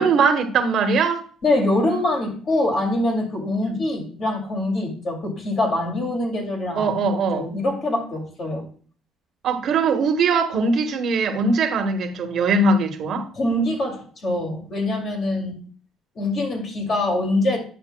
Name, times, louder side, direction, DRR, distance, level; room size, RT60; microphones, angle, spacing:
voice 1, 0.0-1.2 3.6-3.8 6.8-7.5 9.4-13.3, right 4 dB, 50° right, 1.1 m, -21 dB
voice 2, 1.4-8.7 13.3-15.7 16.2-17.6, left 1 dB, 40° left, 2.3 m, -24 dB
10.0 x 6.9 x 2.2 m
cardioid pair, 130°, 0 cm